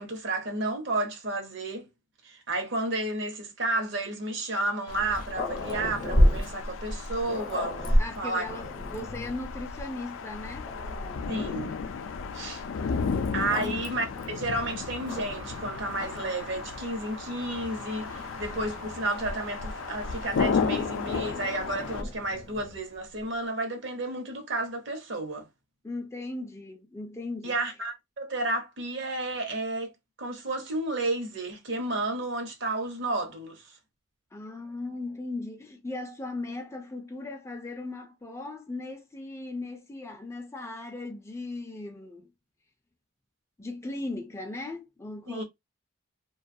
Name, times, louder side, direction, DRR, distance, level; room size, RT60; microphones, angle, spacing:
voice 1, 0.0-1.9 2.2-8.5 11.3-11.8 12.3-12.6 13.3-25.5 27.4-29.9 30.2-33.7 45.3-45.4, right 2 dB, 65° right, 0.9 m, -32 dB
sound 1, 4.9-22.0, left 5 dB, 85° left, 0.4 m, -34 dB
Growling, 4.9-9.5 10.2-10.3 10.6-11.7 12.8-15.6 15.9-16.4 17.3-19.1 20.3-22.8, equal, 45° left, 0.7 m, -31 dB
voice 2, 8.0-10.7 13.3-14.0 25.8-27.6 34.3-42.3 43.6-45.4, left 2 dB, 15° left, 0.4 m, -38 dB
sound 2, 14.5-20.3, right 4 dB, 80° right, 0.5 m, -46 dB
2.4 x 2.3 x 2.6 m
head